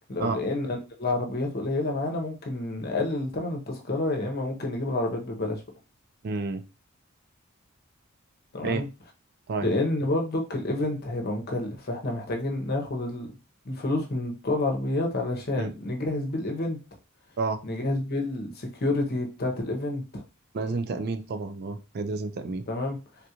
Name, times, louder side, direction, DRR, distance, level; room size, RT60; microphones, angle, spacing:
voice 1, 0.1-5.6 8.5-8.9 9.6-13.3 13.6-16.8 17.6-20.2 22.7-23.0, left 2 dB, 50° left, 0.8 m, -29 dB
voice 2, 6.2-6.6 8.6-8.8 9.5-9.7 15.6-15.7 17.4-17.6 20.5-22.6, right 3 dB, 50° right, 0.4 m, -30 dB
3.6 x 2.4 x 2.9 m
head